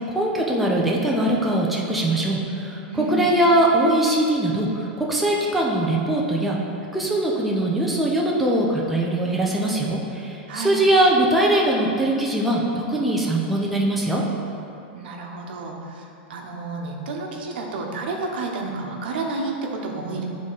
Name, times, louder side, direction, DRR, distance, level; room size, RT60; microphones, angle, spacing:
voice 1, 0.1-6.6 6.9-14.2, right 1 dB, ahead, -4 dB, 0.5 m, -21 dB
voice 2, 14.9-16.0 16.3-20.2, right 3 dB, 70° right, 0 dB, 1.0 m, -30 dB
9.4 x 3.7 x 4.0 m, 2.7 s
supercardioid pair, 160°, 6 cm